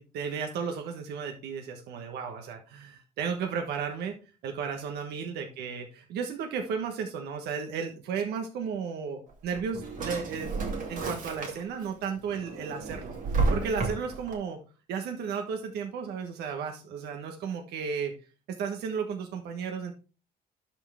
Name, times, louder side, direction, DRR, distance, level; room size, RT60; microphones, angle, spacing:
voice 1, 0.0-4.2 4.4-10.6 10.9-14.6 14.9-18.1 18.6-19.9, right 6 dB, 75° right, 4 dB, 1.2 m, -34 dB
Drawer open or close, 9.3-11.9 12.3-14.3, right 3 dB, 50° right, 2.6 m, -31 dB
11.5 x 4.5 x 3.5 m, 0.34 s
cardioid pair, 110°, 17 cm